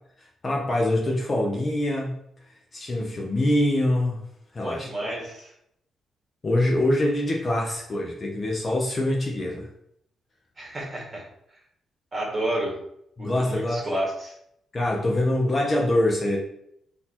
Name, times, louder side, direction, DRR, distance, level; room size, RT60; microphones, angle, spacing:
voice 1, 0.4-2.2 2.7-4.2 4.5-5.1 6.4-9.7 13.2-13.8 14.7-16.4, left 1 dB, 30° left, -1 dB, 0.7 m, -24 dB
voice 2, 4.6-5.5 10.6-11.2 12.1-12.7 13.2-14.3, right 1 dB, 25° right, -3 dB, 1.6 m, -30 dB
4.0 x 2.7 x 4.3 m, 0.74 s
cardioid pair, 130°, 0 cm